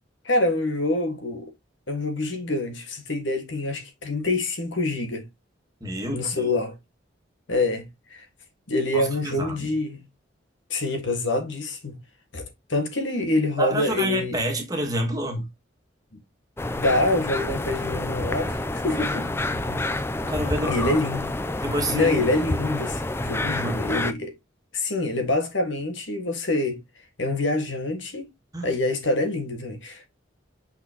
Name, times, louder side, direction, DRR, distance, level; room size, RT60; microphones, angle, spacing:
voice 1, 0.3-1.5 1.9-5.3 6.1-6.8 7.5-8.3 8.7-10.1 10.7-12.0 12.3-14.4 16.8-19.3 20.7-21.3 21.9-24.3 24.7-26.8 27.2-28.3 28.6-30.1, left 2 dB, 75° left, 1.7 m, -26 dB
voice 2, 5.8-6.4 8.9-9.7 13.6-15.5 18.9-20.9 21.6-22.2 23.5-23.8 28.5-28.7, right 1 dB, 20° right, 1.8 m, -29 dB
sound 1, 16.6-24.1, left 2 dB, 10° left, 0.4 m, -28 dB
6.1 x 5.7 x 2.9 m
head